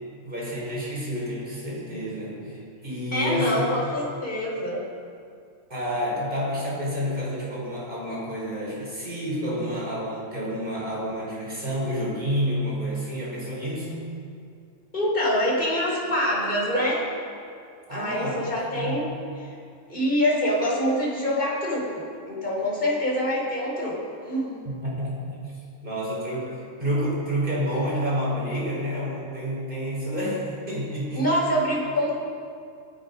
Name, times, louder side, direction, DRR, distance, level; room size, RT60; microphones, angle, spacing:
voice 1, 0.2-3.8 5.7-14.0 17.9-19.0 25.0-25.4 25.8-31.4, equal, 15° right, -5 dB, 4.5 m, -29 dB
voice 2, 3.1-4.8 14.9-17.0 17.9-19.1 19.4-19.6 19.9-24.0 24.3-24.6 31.1-32.2, equal, 15° left, -5 dB, 3.8 m, -25 dB
17.5 x 12.5 x 5.4 m, 2.4 s
omnidirectional pair, 4.3 m